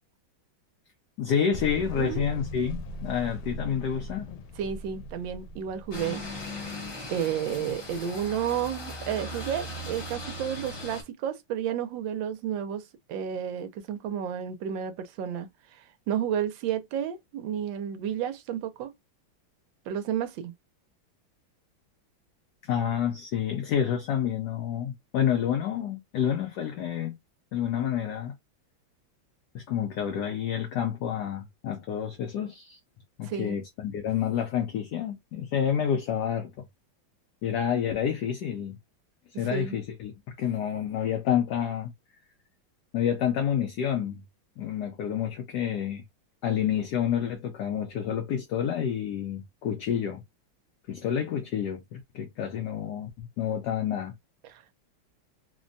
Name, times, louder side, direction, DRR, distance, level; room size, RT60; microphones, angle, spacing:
voice 1, 1.2-4.3 22.6-27.2 27.5-28.4 29.5-32.8 33.2-36.6 37.4-38.8 39.3-41.9 42.9-44.2 44.6-46.0 46.4-50.2 50.9-54.1, left 9 dB, 75° left, 1.0 m, -29 dB
sound 1, 1.5-6.7, equal, 90° left, 1.4 m, -39 dB
voice 2, 4.6-6.2 7.1-12.8 13.1-15.5 16.1-18.9 19.9-20.5 33.3-33.6 39.5-39.8 54.5-54.6, right 9 dB, 75° right, 1.2 m, -31 dB
sound 2, 5.9-11.0, left 1 dB, 35° left, 1.0 m, -38 dB
3.3 x 2.1 x 2.5 m
omnidirectional pair, 2.2 m